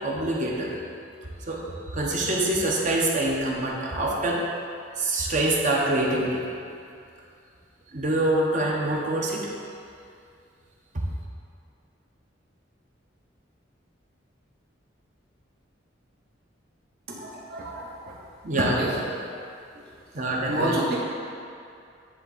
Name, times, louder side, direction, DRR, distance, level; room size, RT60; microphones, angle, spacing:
voice 1, 0.0-0.8 1.5-4.5 5.0-6.4 7.9-9.4 17.5-17.6 18.4-18.8 20.1-20.8, right 1 dB, 45° right, -2 dB, 0.9 m, -25 dB
voice 2, 17.1-18.1 18.6-19.3 19.7-19.8 20.4-21.0, right 1 dB, 60° right, -5 dB, 1.2 m, -29 dB
9.9 x 3.4 x 4.0 m, 2.4 s
head